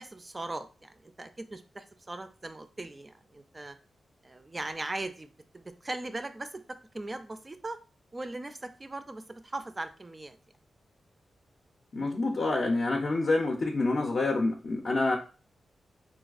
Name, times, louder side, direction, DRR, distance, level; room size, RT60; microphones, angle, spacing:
voice 1, 0.0-3.8 4.2-6.6 6.9-7.8 8.1-10.4, right 2 dB, 25° right, 9 dB, 0.3 m, -39 dB
voice 2, 11.9-15.2, left 2 dB, 50° left, 0 dB, 0.5 m, -27 dB
4.0 x 2.3 x 2.4 m, 0.36 s
wide cardioid pair, 105°, 0 cm